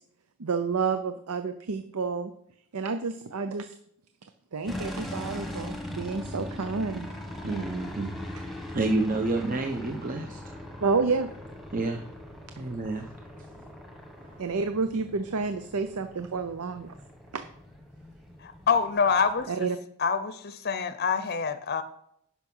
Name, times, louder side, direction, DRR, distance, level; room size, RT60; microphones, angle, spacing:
voice 1, 0.4-2.3 2.7-3.7 4.5-7.1 10.8-11.3 14.4-16.9 17.3-17.4 19.5-19.8, right 4 dB, 80° right, 9 dB, 0.6 m, -29 dB
sound 1, 4.7-19.5, left 1 dB, ahead, 1.3 m, -41 dB
voice 2, 7.4-8.2 8.7-10.4 11.7-12.0 12.6-13.1 14.2-14.4, right 2 dB, 40° right, 3 dB, 0.9 m, -29 dB
voice 3, 18.4-19.7 20.0-21.8, left 5 dB, 45° left, 11 dB, 0.6 m, -26 dB
10.5 x 5.9 x 5.4 m, 0.72 s
head